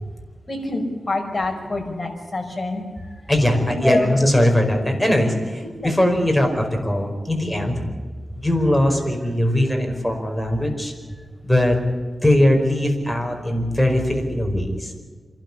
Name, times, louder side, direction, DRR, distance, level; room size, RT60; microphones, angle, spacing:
voice 1, 0.5-2.8 3.8-4.1 5.8-5.9, left 2 dB, 30° left, 2 dB, 5.6 m, -25 dB
voice 2, 3.3-7.8 8.4-10.9 11.4-11.8 12.2-14.9, left 1 dB, 5° left, 2 dB, 5.0 m, -20 dB
27.0 x 12.5 x 9.9 m, 1.5 s
wide cardioid pair, 80°, 0 cm